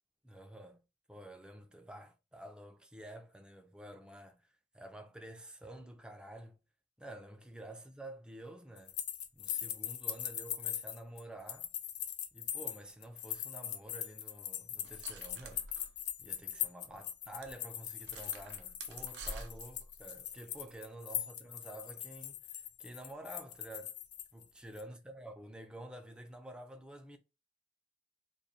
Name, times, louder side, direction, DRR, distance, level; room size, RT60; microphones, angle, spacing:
voice 1, 0.2-0.8 1.1-6.6 7.0-9.0 9.3-11.7 12.3-15.7 16.2-24.0 24.3-27.2, right 1 dB, 5° right, 0.3 m, -50 dB
sound 1, 8.8-24.4 24.8-24.9, left 11 dB, 65° left, 0.4 m, -40 dB
sound 2, 14.8-16.6 16.9-17.0 17.4-17.5 18.0-20.8, right 3 dB, 70° right, 0.4 m, -49 dB
2.3 x 2.1 x 2.6 m
head